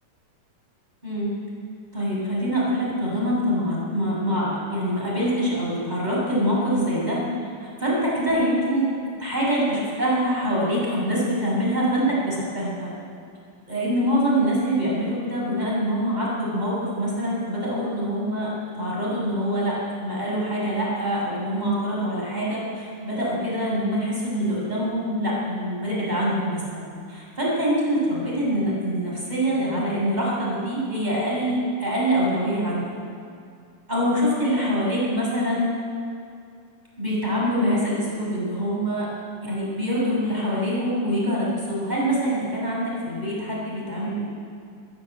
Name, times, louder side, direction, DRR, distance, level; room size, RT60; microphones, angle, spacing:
voice 1, 1.0-1.3 1.9-7.3 7.6-8.9 9.2-12.9 13.7-32.9 33.9-35.8 37.0-39.1 39.4-44.2, equal, 10° right, -5 dB, 7.3 m, -25 dB
21.0 x 15.0 x 8.9 m, 2.3 s
omnidirectional pair, 3.7 m